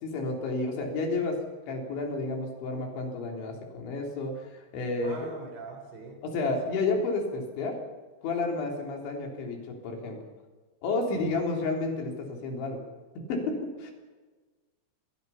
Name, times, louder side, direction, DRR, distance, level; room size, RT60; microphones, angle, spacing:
voice 1, 0.0-1.4 1.7-5.2 6.2-7.8 8.2-10.2 10.8-12.8 13.3-13.9, left 3 dB, 75° left, 1 dB, 5.9 m, -31 dB
voice 2, 5.0-6.2 6.7-6.8 11.1-11.4, right 3 dB, 75° right, 4 dB, 6.4 m, -42 dB
28.0 x 21.0 x 5.8 m, 1.3 s
omnidirectional pair, 5.3 m